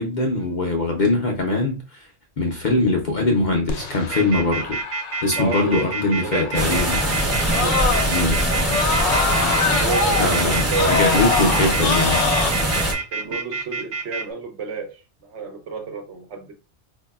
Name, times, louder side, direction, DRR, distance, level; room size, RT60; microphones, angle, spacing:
voice 1, 0.0-2.0 2.4-4.8 5.2-7.0 8.1-8.4 10.2-12.2, left 2 dB, 50° left, 0.6 m, -22 dB
Screaming, 3.7-8.3 8.6-12.5, left 5 dB, 75° left, 1.0 m, -25 dB
sound 1, 4.1-14.2, right 4 dB, 45° right, 0.8 m, -28 dB
voice 2, 5.4-5.8 6.1-6.5 7.6-7.8 9.7-11.1 13.1-16.5, right 4 dB, 70° right, 1.1 m, -31 dB
sound 2, 6.5-12.9, right 1 dB, 15° right, 0.7 m, -22 dB
4.5 x 2.7 x 2.3 m
omnidirectional pair, 1.3 m